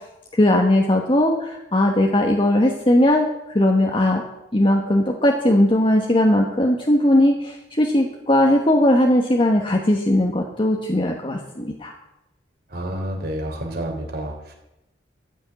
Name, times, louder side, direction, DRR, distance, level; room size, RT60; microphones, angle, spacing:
voice 1, 0.3-3.3 3.5-4.2 4.5-11.9, left 1 dB, 30° left, 1 dB, 1.2 m, -18 dB
voice 2, 12.7-14.5, right 1 dB, 55° right, 2 dB, 3.3 m, -29 dB
14.0 x 6.4 x 9.2 m, 0.94 s
head